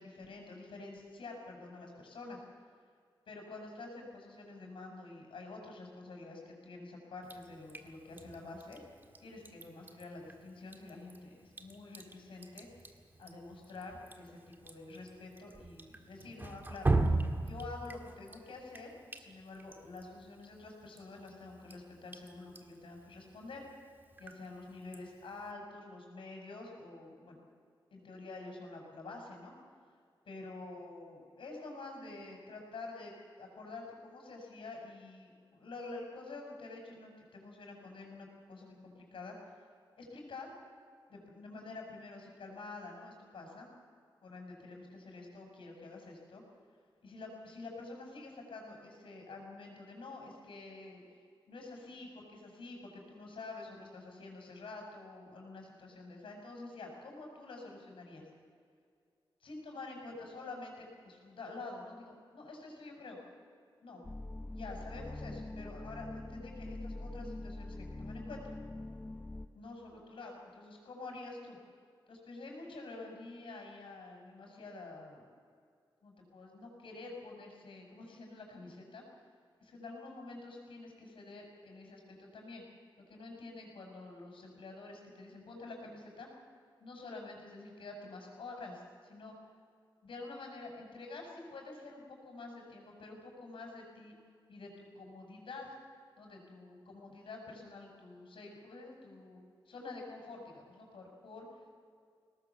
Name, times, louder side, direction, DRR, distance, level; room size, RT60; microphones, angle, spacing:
voice 1, 0.0-2.4 3.3-8.8 9.2-12.7 13.2-16.9 17.4-23.6 24.2-27.4 27.9-29.5 30.3-39.3 40.0-40.5 41.1-43.7 44.2-46.4 47.0-51.0 51.5-58.2 59.4-63.2 63.8-64.0 64.5-68.5 69.5-71.6 72.1-75.2 76.0-79.0 79.6-82.6 83.1-86.3 86.8-89.3 90.0-94.2 94.5-95.7 96.2-99.4 99.7-101.5, left 3 dB, 90° left, 2 dB, 6.3 m, -48 dB
Drip, 7.2-25.5, right 2 dB, 25° right, 1.7 m, -40 dB
sound 1, 64.0-69.5, left 2 dB, 15° left, 0.6 m, -43 dB
22.5 x 19.0 x 7.2 m, 2.2 s
wide cardioid pair, 170°, 9 cm